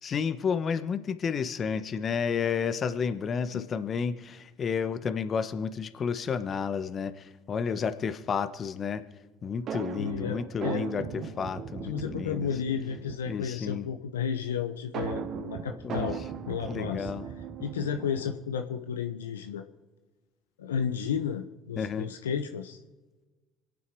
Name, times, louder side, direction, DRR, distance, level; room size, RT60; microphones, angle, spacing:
voice 1, 0.0-9.0 9.4-12.5 13.3-13.9 15.8-16.1 16.7-17.3 21.8-22.1, left 6 dB, 45° left, 11 dB, 1.1 m, -31 dB
sound 1, 9.7-13.4 14.9-18.5, right 7 dB, 55° right, 1.0 m, -38 dB
voice 2, 10.0-10.9 11.8-16.2 16.5-17.1 17.6-19.6 20.6-22.8, left 7 dB, 85° left, 6 dB, 0.8 m, -32 dB
27.0 x 9.1 x 4.7 m, 1.2 s
hypercardioid pair, 60°, 0 cm